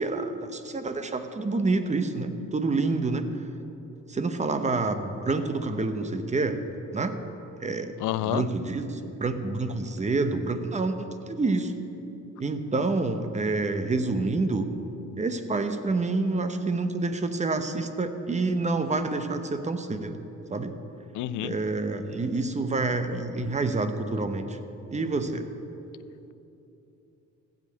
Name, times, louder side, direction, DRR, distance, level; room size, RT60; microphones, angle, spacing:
voice 1, 0.0-3.3 4.1-6.6 6.9-7.2 7.6-7.9 8.2-11.7 12.4-14.7 15.2-20.2 20.5-20.8 21.4-24.6 24.9-25.5, right 3 dB, 25° right, 8 dB, 0.9 m, -28 dB
voice 2, 8.0-8.5 21.1-21.5, left 13 dB, 85° left, 16 dB, 0.5 m, -28 dB
15.5 x 5.2 x 8.4 m, 3.0 s
cardioid pair, 90°, 30 cm